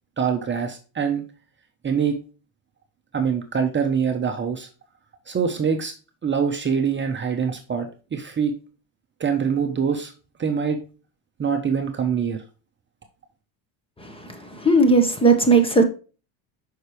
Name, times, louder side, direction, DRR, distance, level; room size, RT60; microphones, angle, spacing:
voice 1, 0.2-1.2 1.8-2.2 3.1-4.7 5.3-5.9 6.2-8.5 9.2-10.1 10.4-10.8 11.4-12.4, right 6 dB, 25° right, 4 dB, 0.9 m, -24 dB
voice 2, 14.0-15.8, right 3 dB, 10° left, 6 dB, 1.1 m, -18 dB
6.6 x 5.6 x 3.1 m, 0.34 s
cardioid pair, 125°, 46 cm